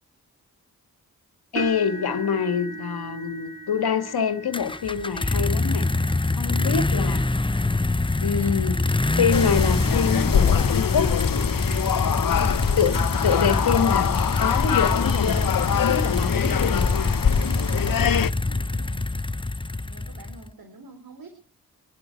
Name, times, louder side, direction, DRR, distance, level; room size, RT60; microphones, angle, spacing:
voice 1, 1.5-5.9 6.3-7.3 8.2-8.8 9.1-11.1 12.1-12.5 12.8-13.0 13.2-14.1 14.4-15.4 15.8-17.1, left 7 dB, 80° left, 2.1 m, -25 dB
sound 1, 1.6-9.6 10.2-10.5 10.9-11.0 12.4-12.5, right 3 dB, 35° right, 7.2 m, -40 dB
sound 2, 4.5-20.5, left 2 dB, 15° left, 0.9 m, -25 dB
voice 2, 7.3-7.8 12.3-13.0 18.3-19.3 19.9-21.3, right 3 dB, 65° right, 3.8 m, -47 dB
sound 3, 9.3-18.3, left 8 dB, 60° left, 1.0 m, -24 dB
25.0 x 11.0 x 4.7 m
cardioid pair, 40°, 37 cm